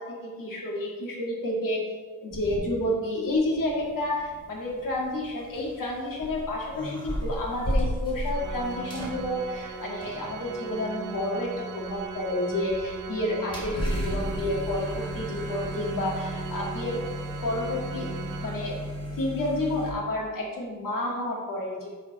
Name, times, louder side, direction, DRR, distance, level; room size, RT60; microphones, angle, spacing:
voice 1, 0.0-1.8 2.2-17.0 17.4-18.1 18.4-18.8 19.2-21.9, left 1 dB, 75° left, -2 dB, 2.3 m, -30 dB
sound 1, 2.3-3.0 3.3-19.9, equal, 15° left, 2.5 m, -35 dB
Organ, 8.3-19.1, right 5 dB, 65° right, 0.8 m, -39 dB
10.5 x 4.9 x 4.3 m, 1.4 s
wide cardioid pair, 135°, 33 cm